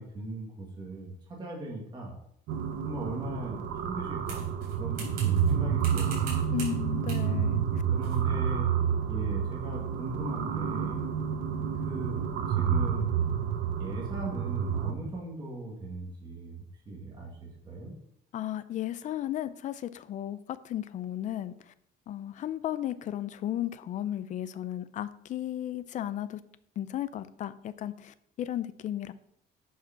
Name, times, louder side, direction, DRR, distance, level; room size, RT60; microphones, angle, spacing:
voice 1, 0.0-2.1 2.8-4.5 4.7-6.8 7.9-8.7 9.1-11.1 11.8-12.2 12.6-13.1 13.8-16.6 16.9-17.9, right 1 dB, 25° right, -3 dB, 1.8 m, -39 dB
sound 1, 2.5-14.9, right 8 dB, 90° right, 1.1 m, -29 dB
sound 2, 4.3-5.5 5.8-6.8 7.1-7.3 8.0-8.2, right 4 dB, 55° right, 3.8 m, -43 dB
voice 2, 6.5-7.6 18.3-21.7 22.1-26.4 26.8-29.1, left 12 dB, 40° left, 14 dB, 0.5 m, -34 dB
8.2 x 4.9 x 5.7 m, 0.74 s
cardioid pair, 175°, 19 cm